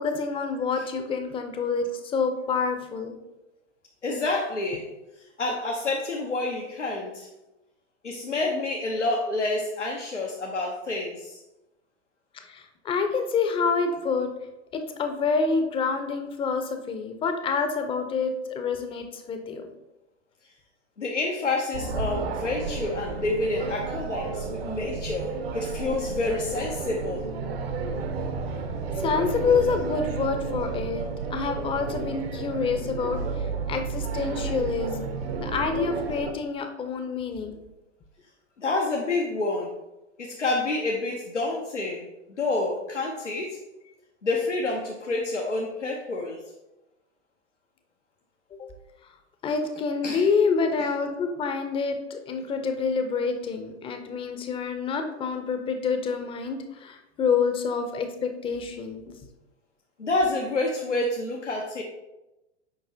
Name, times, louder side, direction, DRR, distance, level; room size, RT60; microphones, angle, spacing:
voice 1, 0.0-3.1 12.4-14.3 14.7-19.7 29.0-31.0 31.3-34.9 35.4-37.6 48.5-48.6 49.4-59.0, left 5 dB, 15° left, 6 dB, 0.6 m, -27 dB
voice 2, 4.0-4.9 5.4-7.3 8.0-11.4 21.0-27.3 38.6-39.7 40.2-43.6 44.2-46.4 50.0-50.2 60.0-61.8, left 2 dB, 90° left, -1 dB, 0.8 m, -28 dB
sound 1, 21.7-36.3, right 4 dB, 60° right, 0.9 m, -32 dB
6.8 x 5.2 x 2.7 m, 0.98 s
figure-of-eight pair, 100°, 35 cm